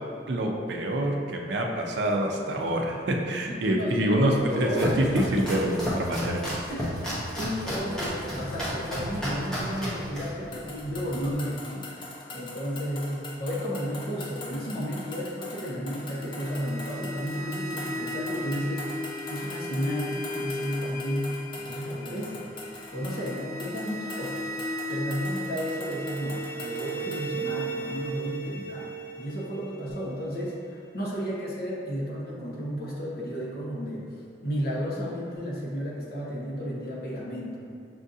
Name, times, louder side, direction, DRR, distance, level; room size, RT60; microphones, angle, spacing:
voice 1, 0.3-6.4, right 1 dB, 70° right, 1 dB, 0.5 m, -26 dB
voice 2, 3.5-5.3 6.7-6.9 7.4-19.0 19.3-22.5 22.9-28.9 29.2-34.1 34.4-37.6, equal, 55° left, -5 dB, 0.9 m, -33 dB
Domestic sounds home sounds, 4.4-11.3, equal, 5° left, 0.8 m, -33 dB
sound 1, 10.5-27.3, left 2 dB, 25° left, 0.4 m, -43 dB
sound 2, 16.0-30.9, equal, 25° right, 1.1 m, -36 dB
6.2 x 2.5 x 2.6 m, 2.4 s
head